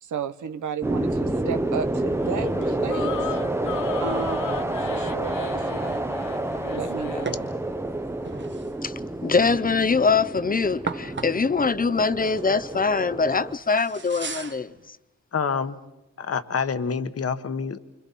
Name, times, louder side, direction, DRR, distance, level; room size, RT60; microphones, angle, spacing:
voice 1, 0.0-3.4 4.0-6.2 6.7-7.5, right 6 dB, 85° right, 1.0 m, -34 dB
sound 1, 0.8-13.5, right 1 dB, 10° right, 0.9 m, -29 dB
sound 2, 2.1-7.4, left 10 dB, 90° left, 0.6 m, -37 dB
sound 3, 4.2-14.9, right 4 dB, 40° right, 1.2 m, -40 dB
voice 2, 9.2-15.0, left 4 dB, 30° left, 0.7 m, -23 dB
voice 3, 15.3-15.8 16.2-17.8, left 6 dB, 50° left, 1.3 m, -27 dB
29.0 x 25.5 x 4.2 m
cardioid pair, 75°, 30 cm